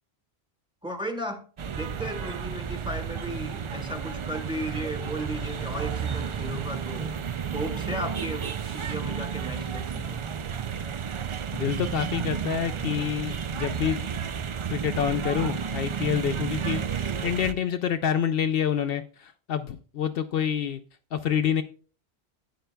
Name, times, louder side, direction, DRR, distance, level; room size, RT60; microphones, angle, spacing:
voice 1, 0.8-1.4 1.7-7.2 7.5-10.2, equal, 5° right, 5 dB, 1.3 m, -35 dB
sound 1, 1.6-17.5, right 7 dB, 55° right, 0.3 m, -32 dB
voice 2, 11.5-14.0 14.7-20.8 21.1-21.6, left 8 dB, 70° left, 9 dB, 0.7 m, -27 dB
11.5 x 9.0 x 2.2 m, 0.39 s
omnidirectional pair, 1.0 m